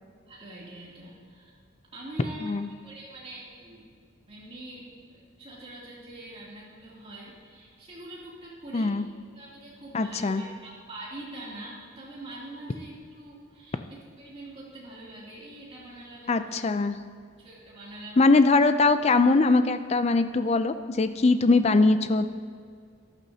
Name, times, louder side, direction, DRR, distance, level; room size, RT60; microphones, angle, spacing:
voice 1, 0.3-1.5 1.9-2.5 2.8-3.9 4.3-9.0 9.3-16.6 17.4-18.3, right 1 dB, 30° right, -6 dB, 2.8 m, -44 dB
voice 2, 8.7-9.1 9.9-10.4 16.3-17.0 18.2-22.3, left 3 dB, 30° left, 10 dB, 0.4 m, -21 dB
13.5 x 11.5 x 2.8 m, 2.2 s
head